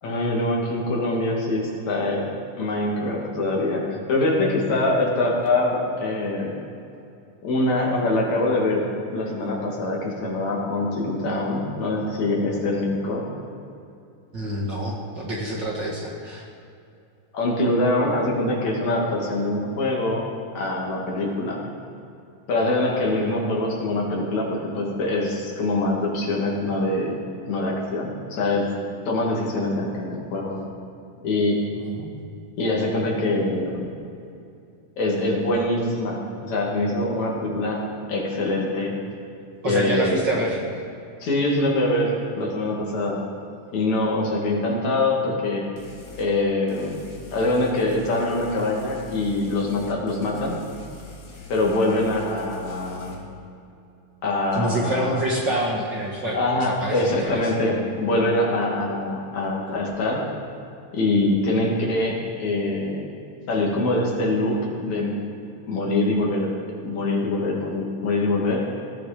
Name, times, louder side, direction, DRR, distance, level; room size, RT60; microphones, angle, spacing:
voice 1, 0.0-2.3 2.6-6.6 7.4-8.8 9.1-13.3 17.3-20.3 20.6-21.6 22.5-27.2 27.5-28.7 29.1-30.6 31.2-31.6 32.6-33.9 35.0-37.8 38.1-38.9 39.6-40.4 41.2-43.2 43.7-45.7 46.2-47.0 47.3-50.6 51.5-53.2 54.2-55.2 56.3-60.3 60.9-63.0 63.5-65.2 65.7-66.5 66.8-68.6, left 2 dB, 65° left, -2 dB, 3.6 m, -24 dB
voice 2, 14.3-16.5 31.8-32.2 39.6-40.6 54.5-57.4, right 1 dB, 40° right, -3 dB, 2.1 m, -27 dB
sound 1, 45.8-46.3 46.7-53.1, left 1 dB, 40° left, 2.7 m, -42 dB
18.5 x 13.5 x 5.2 m, 2.6 s
omnidirectional pair, 3.6 m